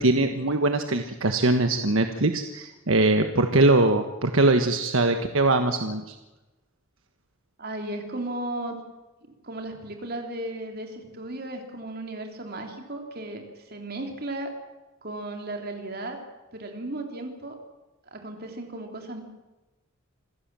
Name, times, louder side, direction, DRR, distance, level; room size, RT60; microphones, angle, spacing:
voice 1, 0.0-6.1, right 2 dB, 75° right, 6 dB, 1.4 m, -22 dB
voice 2, 7.6-8.8 9.4-14.5 15.0-16.2 16.5-17.6 18.1-19.2, right 1 dB, 50° right, 3 dB, 3.5 m, -35 dB
26.5 x 16.0 x 7.6 m, 1.1 s
head